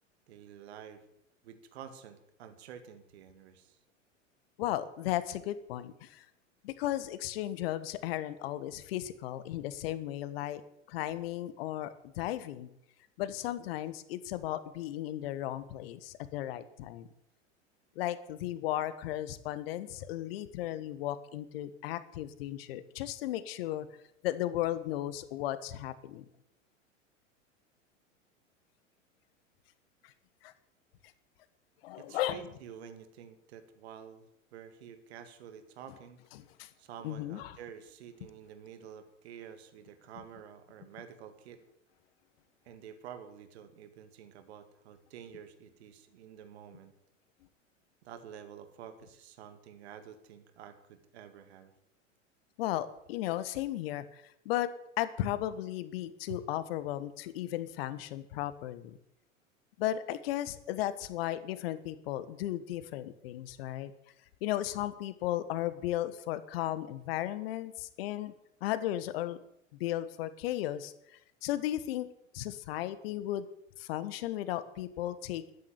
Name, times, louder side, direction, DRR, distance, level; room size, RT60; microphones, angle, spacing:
voice 1, 0.3-1.0 1.4-3.8 31.9-36.2 36.8-41.6 42.7-46.9 48.0-51.7 56.3-56.4, right 8 dB, 55° right, 10 dB, 2.0 m, -49 dB
voice 2, 4.6-6.3 6.6-10.6 10.9-12.7 13.2-17.1 17.9-23.9 24.2-26.2 30.0-30.1 30.4-30.5 31.8-32.4 36.3-36.7 37.0-37.6 52.6-54.7 55.0-59.0 59.8-63.9 64.4-68.3 68.6-69.4 69.8-70.9 71.4-72.1 72.3-73.5 73.8-75.5, left 13 dB, 50° left, 14 dB, 1.4 m, -35 dB
13.0 x 9.9 x 9.4 m, 0.79 s
figure-of-eight pair, 90°, 38 cm